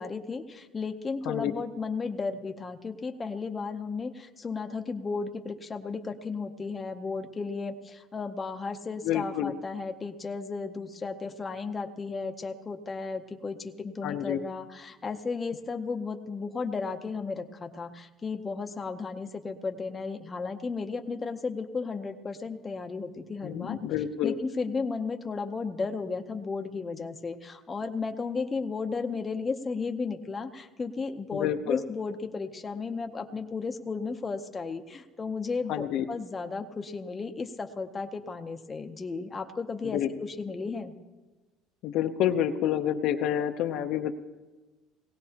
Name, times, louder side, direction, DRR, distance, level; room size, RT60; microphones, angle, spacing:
voice 1, 0.0-23.8 24.2-40.9, left 4 dB, 15° left, 4 dB, 0.7 m, -34 dB
voice 2, 9.0-9.5 14.0-14.4 23.4-24.3 31.3-31.8 35.7-36.1 39.9-40.1 41.8-44.1, left 10 dB, 55° left, 7 dB, 0.7 m, -28 dB
19.5 x 17.0 x 2.9 m, 1.2 s
cardioid pair, 160°, 0 cm